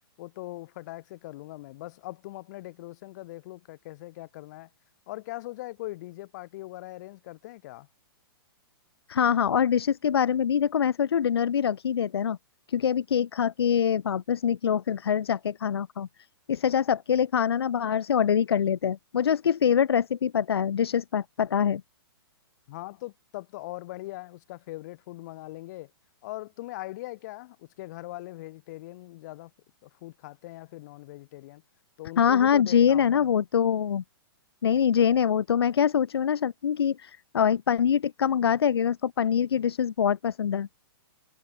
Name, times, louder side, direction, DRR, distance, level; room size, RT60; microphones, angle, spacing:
voice 1, 0.2-4.7 5.1-7.9 22.7-25.9 26.2-29.5 29.8-31.6 32.0-33.3, left 18 dB, 45° left, 0.8 m, -41 dB
voice 2, 9.1-12.4 12.7-16.1 16.5-21.8 32.2-34.0 34.6-40.7, left 8 dB, 85° left, 0.5 m, -24 dB
hypercardioid pair, 130°, 13 cm